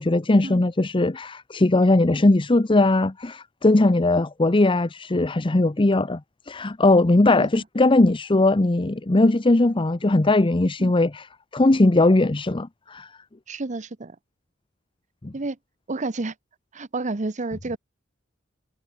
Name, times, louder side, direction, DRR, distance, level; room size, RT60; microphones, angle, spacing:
voice 1, 0.0-6.2 6.5-11.3 11.5-13.1 15.2-15.3, left 2 dB, 25° left, 0.7 m, -19 dB
voice 2, 13.5-14.2 15.3-15.6 15.9-16.3 16.7-17.8, right 3 dB, 40° right, 0.9 m, -30 dB
head